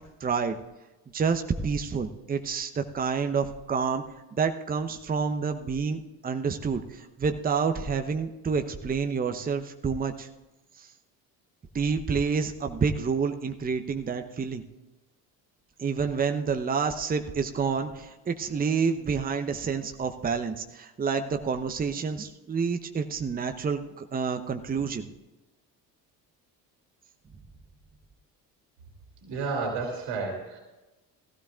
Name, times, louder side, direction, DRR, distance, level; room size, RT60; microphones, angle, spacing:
voice 1, 0.2-0.6 1.1-4.0 4.3-10.3 10.8-10.9 11.7-14.6 15.8-25.1, right 5 dB, 20° right, 7 dB, 0.9 m, -28 dB
voice 2, 29.2-30.6, right 4 dB, 55° right, 1 dB, 2.7 m, -31 dB
18.5 x 16.0 x 2.5 m, 1.1 s
figure-of-eight pair, 55°, 50 cm